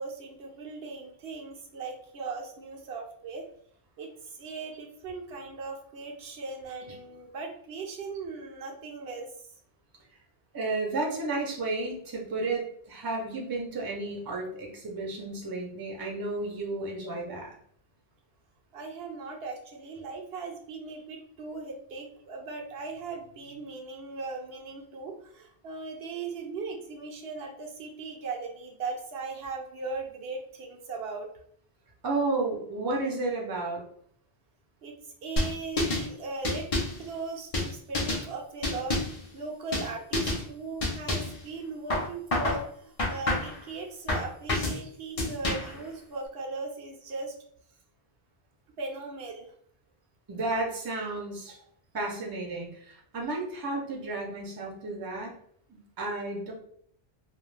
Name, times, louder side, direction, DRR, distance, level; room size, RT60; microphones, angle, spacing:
voice 1, 0.0-3.5 4.0-9.5 18.7-31.3 34.8-36.7 37.0-39.0 39.3-47.3 48.8-49.5 51.5-51.6, right 4 dB, 70° right, 1 dB, 0.8 m, -38 dB
voice 2, 10.5-17.6 32.0-33.8 50.3-51.6 51.9-55.4 55.7-56.5, right 2 dB, 25° right, -1 dB, 0.5 m, -32 dB
sound 1, 35.4-36.1 36.4-37.0 37.5-38.2 38.6-39.2 39.7-39.9 40.1-40.4 40.8-41.4 41.9-42.6 43.0-43.6 44.1-44.8 45.2-45.8, left 2 dB, 40° left, 0.6 m, -28 dB
2.3 x 2.2 x 3.1 m, 0.64 s
omnidirectional pair, 1.1 m